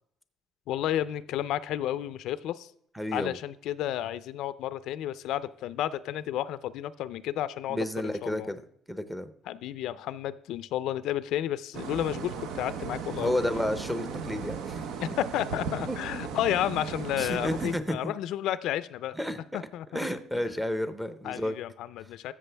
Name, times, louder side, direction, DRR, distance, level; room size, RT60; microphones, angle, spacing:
voice 1, 0.7-2.7 3.1-8.5 9.5-13.3 15.0-19.1 19.5-20.1 21.2-22.3, left 12 dB, 70° left, 15 dB, 0.4 m, -32 dB
voice 2, 2.9-3.4 7.7-8.6 8.9-9.3 13.2-14.8 15.9-16.0 17.2-18.1 19.2-19.4 19.9-21.5, left 1 dB, ahead, 10 dB, 0.7 m, -31 dB
sound 1, 11.7-17.7, right 6 dB, 75° right, 1.0 m, -36 dB
13.5 x 7.5 x 3.4 m, 0.69 s
cardioid pair, 160°, 0 cm